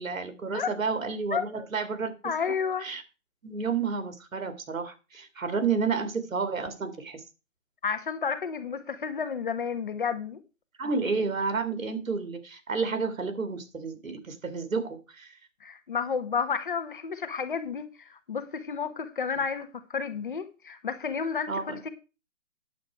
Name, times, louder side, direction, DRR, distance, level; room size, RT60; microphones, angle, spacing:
voice 1, 0.0-2.1 2.8-3.0 3.4-7.2 10.8-15.3 21.5-21.8, right 5 dB, 90° right, 2.4 m, -30 dB
voice 2, 1.3-1.7 2.2-2.9 7.8-10.4 15.6-21.9, left 6 dB, 40° left, 1.4 m, -31 dB
9.6 x 7.8 x 4.6 m
hypercardioid pair, 175°, 39 cm